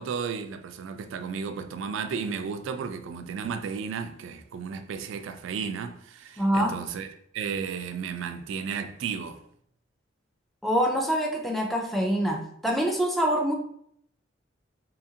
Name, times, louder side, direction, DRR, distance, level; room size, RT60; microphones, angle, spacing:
voice 1, 0.0-7.1 7.3-9.4, right 6 dB, 80° right, 0.3 m, -33 dB
voice 2, 6.4-6.8 10.6-13.5, equal, ahead, 0.4 m, -25 dB
2.8 x 2.5 x 2.7 m
head